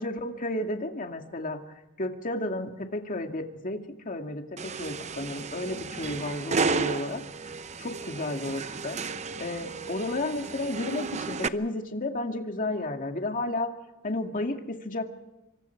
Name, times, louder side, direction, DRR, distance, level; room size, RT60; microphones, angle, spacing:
voice 1, 0.0-1.6 2.0-7.2 7.8-9.0 9.4-13.7 14.0-15.1, left 2 dB, 40° left, 4 dB, 2.2 m, -32 dB
sound 1, 4.6-11.5, right 4 dB, 30° right, 0.7 m, -33 dB
27.0 x 24.5 x 4.7 m, 1.0 s
head